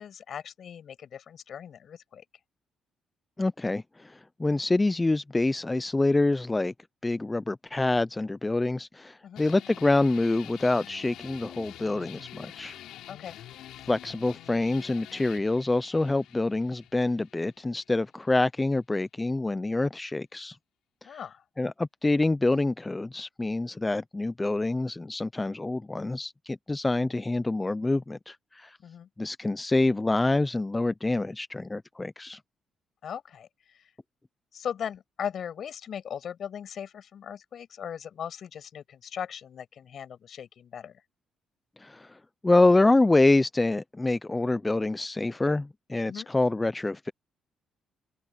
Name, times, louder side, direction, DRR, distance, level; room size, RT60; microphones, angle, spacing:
voice 1, 0.0-2.2 9.2-9.4 13.1-13.4 21.0-21.4 28.8-29.1 33.0-33.5 33.7-33.9 34.5-41.0 46.1-46.3, left 8 dB, 60° left, 7.5 m, -38 dB
voice 2, 3.4-6.7 7.0-12.8 13.9-20.6 21.0-21.2 21.6-28.8 29.2-32.4 41.8-42.2 42.4-47.1, left 2 dB, 15° left, 0.5 m, -26 dB
sound 1, 9.4-18.4, left 12 dB, 85° left, 4.5 m, -47 dB
open air
cardioid pair, 90°, 0 cm